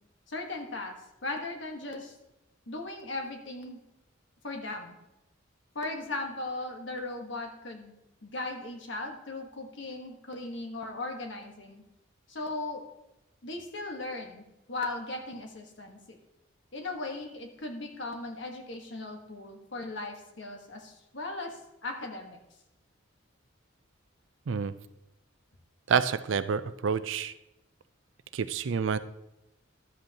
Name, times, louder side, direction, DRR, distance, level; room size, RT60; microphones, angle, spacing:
voice 1, 0.3-0.9 1.2-2.1 2.7-3.8 4.4-5.0 5.7-11.8 12.3-12.8 13.4-16.2 16.7-22.4, left 2 dB, 60° left, 3 dB, 1.3 m, -38 dB
voice 2, 25.9-27.3 28.3-29.0, right 6 dB, 65° right, 13 dB, 0.4 m, -28 dB
12.0 x 7.9 x 2.9 m, 0.89 s
head